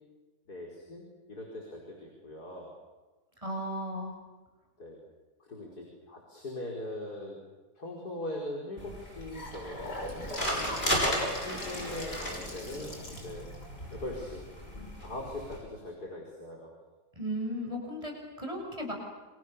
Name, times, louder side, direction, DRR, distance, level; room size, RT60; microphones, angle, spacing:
voice 1, 0.5-2.7 4.8-5.0 5.4-7.4 7.8-10.6 11.3-13.5 13.9-14.5 15.0-16.7, left 1 dB, 70° left, -1 dB, 5.7 m, -41 dB
voice 2, 3.4-4.1 17.2-18.9, equal, 20° right, 1 dB, 7.3 m, -35 dB
sound 1, 8.8-15.6, equal, 30° left, 8.3 m, -35 dB
Gurgling / Sink (filling or washing) / Bathtub (filling or washing), 8.9-15.0, left 1 dB, 85° left, 7.1 m, -42 dB
30.0 x 27.0 x 7.1 m, 1.2 s
omnidirectional pair, 1.8 m